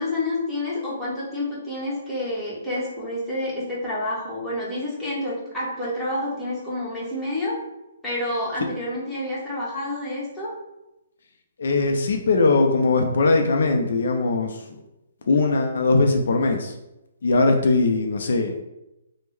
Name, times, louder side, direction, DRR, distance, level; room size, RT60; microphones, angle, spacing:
voice 1, 0.0-7.6 8.0-10.5, left 1 dB, 5° left, -9 dB, 1.1 m, -28 dB
voice 2, 11.6-14.6 15.3-16.7 17.2-18.5, left 3 dB, 70° left, 3 dB, 0.4 m, -20 dB
3.5 x 2.0 x 3.1 m, 0.92 s
hypercardioid pair, 145°, 0 cm